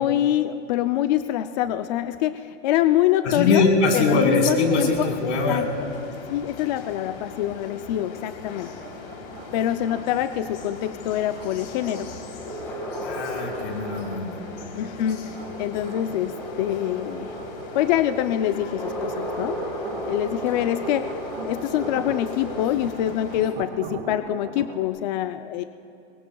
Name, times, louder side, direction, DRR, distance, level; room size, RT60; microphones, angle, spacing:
voice 1, 0.0-3.6 3.9-5.1 5.5-5.7 6.3-8.7 9.5-12.1 14.7-17.4 17.7-19.6 20.1-21.1 21.4-25.6, left 12 dB, 40° left, 9 dB, 0.4 m, -25 dB
voice 2, 3.2-5.7 13.0-14.4, left 3 dB, 80° left, 0 dB, 4.3 m, -22 dB
sound 1, 4.4-23.5, left 5 dB, 55° left, 3.4 m, -41 dB
sound 2, 5.9-22.7, equal, 5° left, 1.8 m, -36 dB
sound 3, 8.8-24.9, right 7 dB, 55° right, 1.4 m, -42 dB
26.5 x 23.0 x 2.3 m, 2.5 s
supercardioid pair, 160°, 35 cm